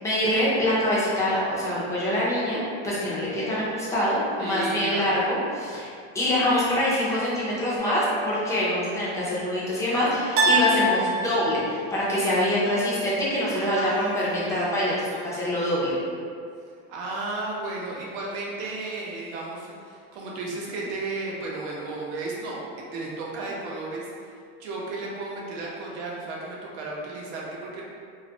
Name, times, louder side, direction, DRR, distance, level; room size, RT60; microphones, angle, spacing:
voice 1, 0.0-16.0, left 1 dB, 10° left, -8 dB, 0.4 m, -25 dB
voice 2, 4.4-5.1 13.5-14.6 16.9-22.6 22.9-24.1 24.6-27.8, right 2 dB, 75° right, -4 dB, 0.7 m, -33 dB
sound 1, 7.8-8.5 10.4-11.8, right 1 dB, 40° right, 0.5 m, -25 dB
2.3 x 2.0 x 2.7 m, 2.3 s
supercardioid pair, 145°, 34 cm